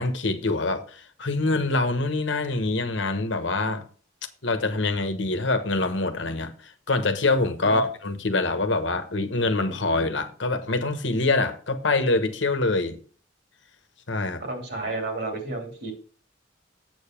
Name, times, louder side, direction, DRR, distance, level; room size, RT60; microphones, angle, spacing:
voice 1, 0.0-3.8 4.4-13.0 14.1-14.4, left 2 dB, 75° left, 1.2 m, -25 dB
voice 2, 14.4-15.9, right 2 dB, 60° right, 2.9 m, -31 dB
7.9 x 7.0 x 4.5 m
head